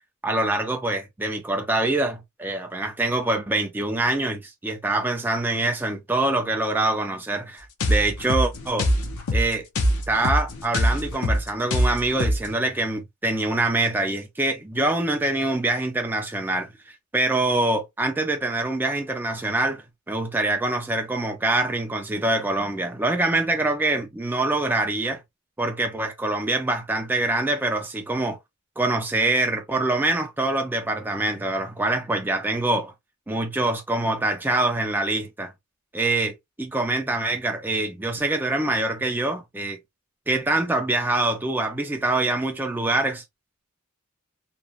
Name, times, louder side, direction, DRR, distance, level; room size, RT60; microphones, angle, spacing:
voice 1, 0.2-8.9 9.3-9.7 10.1-25.2 25.6-28.4 28.8-32.9 33.3-35.5 35.9-39.8 40.3-43.2, right 2 dB, 10° right, 0.4 m, -25 dB
sound 1, 7.8-12.5, equal, 75° left, 0.7 m, -24 dB
3.0 x 2.1 x 2.3 m
head